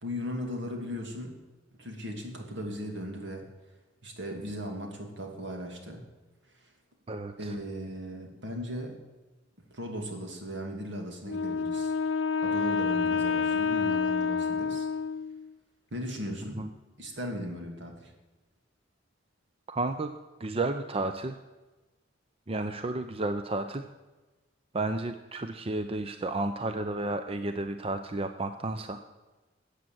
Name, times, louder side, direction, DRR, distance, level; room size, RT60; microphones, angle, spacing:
voice 1, 0.0-1.4 1.8-3.5 4.0-6.1 6.5-6.7 7.4-9.0 9.7-12.2 12.4-14.9 15.9-16.6 17.0-18.1, equal, 70° right, 3 dB, 2.6 m, -37 dB
voice 2, 7.1-7.5 16.6-16.7 19.7-20.1 20.4-21.3 22.5-23.8 24.7-29.0, right 2 dB, 30° right, 8 dB, 0.6 m, -32 dB
Wind instrument woodwind instrument, 11.3-15.5, left 5 dB, 80° left, 0.6 m, -28 dB
14.0 x 8.4 x 7.8 m, 1.2 s
head